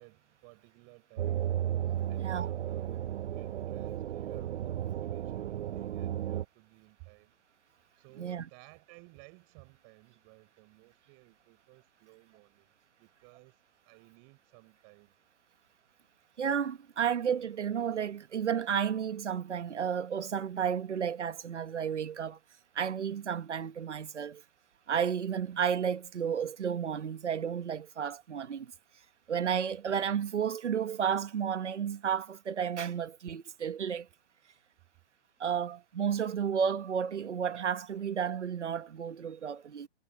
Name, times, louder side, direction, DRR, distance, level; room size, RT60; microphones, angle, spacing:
voice 1, 0.0-1.7 2.1-7.3 8.0-13.6 13.8-15.1, right 35 dB, 40° right, 6.8 m, -58 dB
sound 1, 1.2-6.4, right 11 dB, 70° right, 0.9 m, -34 dB
voice 2, 2.2-2.5 8.2-8.4 16.4-22.4 22.7-24.4 24.9-28.7 29.3-34.1 35.4-39.9, right 7 dB, 85° right, 1.5 m, -32 dB
hypercardioid pair, 125°, 34 cm